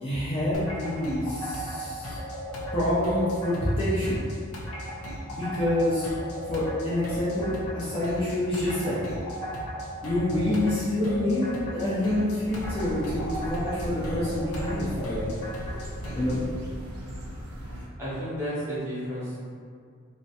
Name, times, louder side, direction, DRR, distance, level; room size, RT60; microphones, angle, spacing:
voice 1, 0.0-2.2 2.7-4.2 5.3-6.1 6.4-9.0 10.0-15.3 16.1-16.4, left 1 dB, 25° left, -11 dB, 0.5 m, -27 dB
sound 1, 0.5-16.4, equal, 75° left, 0.5 m, -36 dB
sound 2, 12.4-17.9, equal, 85° right, 0.5 m, -38 dB
voice 2, 18.0-19.4, equal, 10° right, -12 dB, 0.8 m, -32 dB
2.5 x 2.1 x 2.7 m, 2.2 s
head